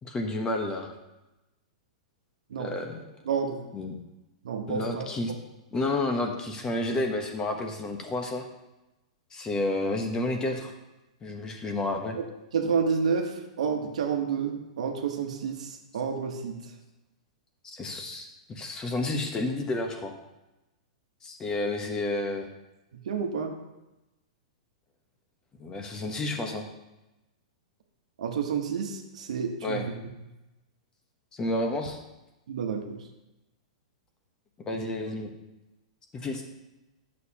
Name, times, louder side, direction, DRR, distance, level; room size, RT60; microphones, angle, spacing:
voice 1, 0.0-0.9 2.6-3.0 3.7-4.0 4.7-5.3 5.7-8.5 9.3-10.7 11.2-12.2 17.6-20.1 21.2-22.5 25.6-26.7 29.6-29.8 31.3-32.0 34.7-35.3 36.1-36.4, left 2 dB, 20° left, 3 dB, 1.0 m, -30 dB
voice 2, 3.3-3.6 4.4-5.1 12.1-12.2 12.5-16.5 23.1-23.5 28.2-29.8 32.5-33.0, right 6 dB, 75° right, 4 dB, 1.1 m, -29 dB
9.5 x 6.5 x 2.9 m, 0.99 s
hypercardioid pair, 125°, 4 cm